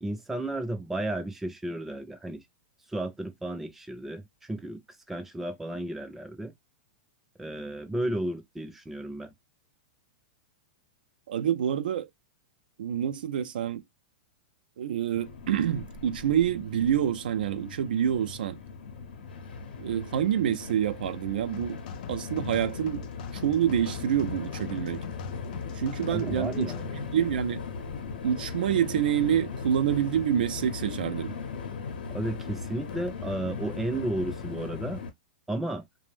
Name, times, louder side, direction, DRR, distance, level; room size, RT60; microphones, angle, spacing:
voice 1, 0.0-2.4 2.9-4.8 5.1-6.5 7.4-9.3 26.1-26.9 32.1-35.0 35.5-35.8, right 1 dB, 5° right, 0.4 m, -33 dB
voice 2, 11.3-12.1 12.8-13.8 14.8-18.6 19.8-21.8 22.1-23.1 23.3-25.0 25.8-26.7 26.9-27.6 28.2-31.3, right 9 dB, 85° right, 0.3 m, -27 dB
Train, 15.1-35.1, left 5 dB, 90° left, 0.7 m, -38 dB
sound 1, 21.5-26.9, left 10 dB, 60° left, 0.4 m, -43 dB
2.5 x 2.0 x 3.3 m
supercardioid pair, 145°, 5 cm